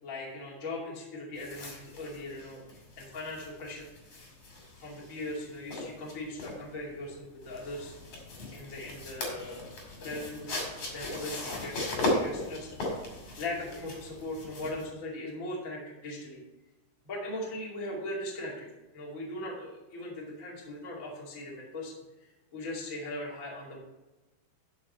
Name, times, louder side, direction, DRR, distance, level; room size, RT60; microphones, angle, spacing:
voice 1, 0.0-2.6 3.0-3.9 4.8-7.9 8.5-9.7 10.0-10.6 10.9-12.8 13.4-16.4 17.0-18.7 18.9-23.8, left 1 dB, 25° left, -3 dB, 1.9 m, -39 dB
sound 1, 1.4-14.8, left 1 dB, 40° left, 3.0 m, -37 dB
10.5 x 6.2 x 4.3 m, 1.0 s
omnidirectional pair, 5.0 m